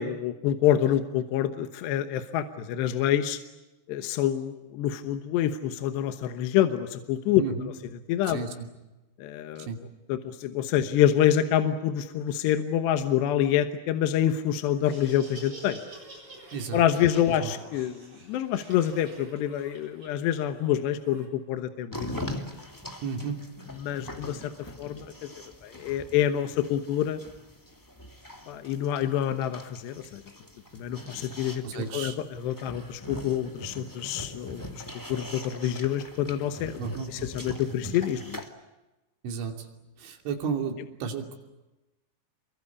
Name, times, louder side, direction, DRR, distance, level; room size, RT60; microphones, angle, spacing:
voice 1, 0.0-3.4 3.9-7.4 8.1-8.4 9.2-9.7 10.1-15.8 16.7-22.1 23.8-24.5 24.8-25.3 25.6-27.2 28.5-30.2 30.7-32.1 32.4-34.8 35.1-36.8 37.1-38.4, left 10 dB, 75° left, 8 dB, 3.1 m, -27 dB
voice 2, 7.4-7.7 8.2-8.7 9.6-9.8 16.5-16.9 17.4-17.5 23.0-23.4 31.6-32.2 36.8-37.1 39.2-39.7 40.0-41.4, right 5 dB, 90° right, 4 dB, 5.3 m, -33 dB
Laughter, 14.7-21.3, right 2 dB, 30° right, 8.7 m, -47 dB
sound 1, 21.9-38.5, left 1 dB, 30° left, 0.4 m, -42 dB
28.5 x 24.0 x 8.4 m, 1.0 s
omnidirectional pair, 5.2 m